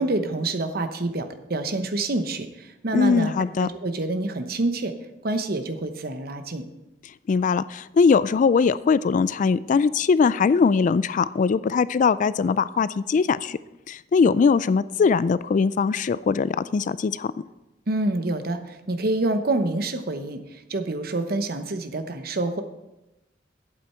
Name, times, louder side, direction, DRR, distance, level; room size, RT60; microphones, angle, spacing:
voice 1, 0.0-3.3 3.6-4.9 5.2-6.6 17.9-18.6 18.9-20.4 20.7-22.6, right 2 dB, 55° right, 8 dB, 1.0 m, -27 dB
voice 2, 2.9-3.7 7.3-13.6 13.9-17.3, left 5 dB, 45° left, 17 dB, 0.3 m, -21 dB
11.5 x 8.7 x 4.4 m, 0.98 s
head